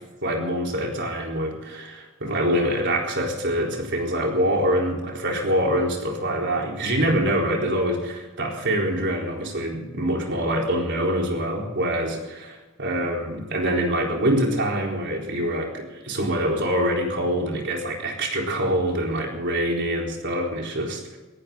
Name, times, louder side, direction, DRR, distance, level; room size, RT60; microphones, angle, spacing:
voice 1, 0.2-21.2, equal, 60° right, 0 dB, 4.1 m, -25 dB
20.0 x 17.0 x 4.0 m, 1.1 s
head